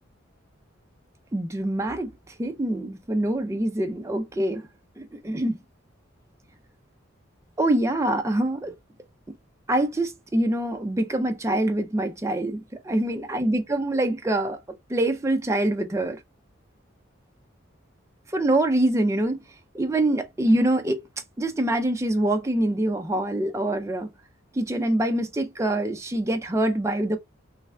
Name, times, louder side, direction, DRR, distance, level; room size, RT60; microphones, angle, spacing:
voice 1, 1.3-4.7 5.0-5.6 7.6-8.7 9.7-12.6 12.8-14.6 14.9-16.2 18.3-19.4 19.7-21.0 21.4-24.1 24.5-27.2, right 1 dB, 15° right, 0.3 m, -25 dB
3.2 x 2.2 x 3.6 m
head